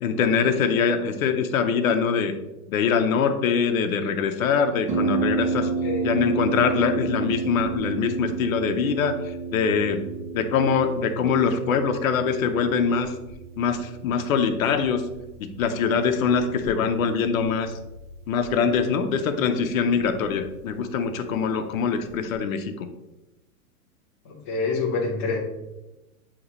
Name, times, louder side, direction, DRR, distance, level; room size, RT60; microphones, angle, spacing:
voice 1, 0.0-2.3 2.7-5.7 6.0-9.2 9.5-10.0 10.3-13.1 13.6-15.0 15.4-17.7 18.3-22.9, left 6 dB, 65° left, 7 dB, 0.9 m, -23 dB
Harp, 4.9-22.3, right 4 dB, 15° right, 0.6 m, -32 dB
voice 2, 5.8-6.2 24.2-25.4, left 4 dB, 15° left, -5 dB, 0.3 m, -27 dB
8.4 x 3.0 x 4.1 m, 0.99 s
hypercardioid pair, 150°, 44 cm